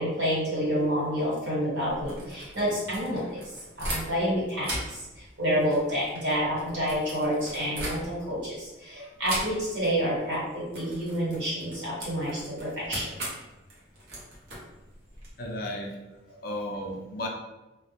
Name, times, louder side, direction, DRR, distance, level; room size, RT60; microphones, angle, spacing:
voice 1, 0.0-3.2 3.8-10.4 10.7-13.1, equal, 75° right, -7 dB, 1.2 m, -28 dB
sound 1, 1.9-4.3 4.6-8.4 9.2-9.9 10.2-10.4 10.7-15.3, right 1 dB, 60° right, 0.7 m, -38 dB
voice 2, 15.4-16.0 16.4-17.3, left 1 dB, 50° left, 1 dB, 0.4 m, -33 dB
2.2 x 2.0 x 2.8 m, 1.1 s
head